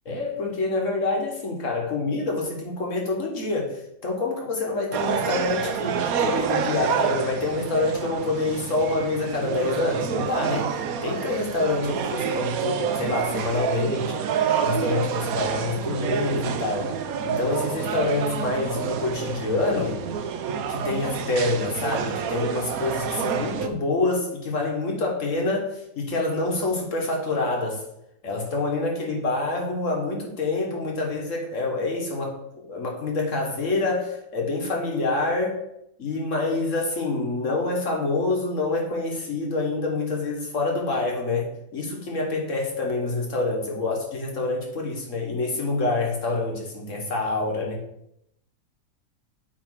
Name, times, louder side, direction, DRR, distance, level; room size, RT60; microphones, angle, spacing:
voice 1, 0.1-10.7 11.0-14.2 14.6-20.0 20.7-27.8 28.2-35.6 36.0-47.8, left 2 dB, 55° left, 0 dB, 1.8 m, -27 dB
sound 1, 4.9-23.7, right 7 dB, 75° right, 1.1 m, -28 dB
8.8 x 3.4 x 4.8 m, 0.79 s
omnidirectional pair, 1.6 m